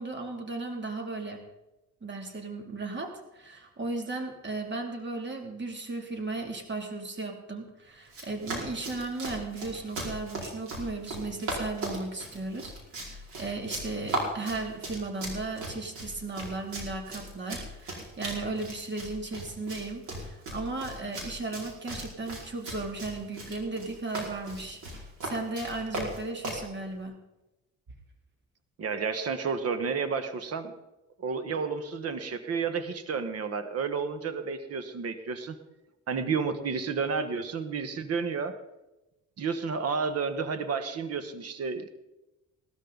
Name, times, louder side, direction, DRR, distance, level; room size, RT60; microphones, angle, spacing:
voice 1, 0.0-1.4 2.0-27.2, right 3 dB, 35° right, 3 dB, 2.8 m, -36 dB
Run, 8.1-26.7, right 1 dB, 85° right, 5.1 m, -38 dB
voice 2, 28.8-30.7 31.2-35.5 36.1-38.5 39.4-41.8, right 5 dB, 55° right, 10 dB, 1.3 m, -31 dB
18.5 x 13.0 x 4.0 m, 0.97 s
cardioid pair, 90°, 30 cm